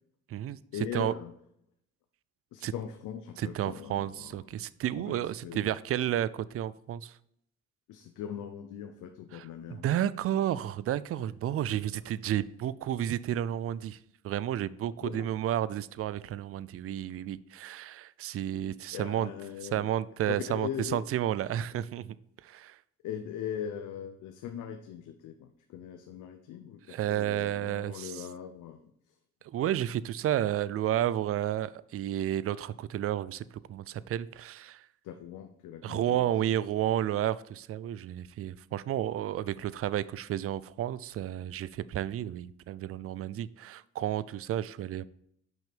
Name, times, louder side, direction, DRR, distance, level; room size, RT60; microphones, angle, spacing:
voice 1, 0.7-1.3 2.5-4.5 5.0-5.8 7.9-9.9 15.0-15.3 18.9-19.9 20.2-21.0 22.6-22.7 23.0-28.8 35.0-36.6, left 9 dB, 85° left, 6 dB, 0.7 m, -40 dB
voice 2, 3.4-7.2 9.3-9.4 9.7-14.0 14.2-19.3 19.7-22.2 22.4-22.8 26.9-28.3 29.5-33.4 33.7-34.9 35.8-45.0, right 11 dB, 50° right, 18 dB, 0.4 m, -31 dB
6.2 x 5.4 x 5.0 m, 0.73 s
cardioid pair, 90°, 30 cm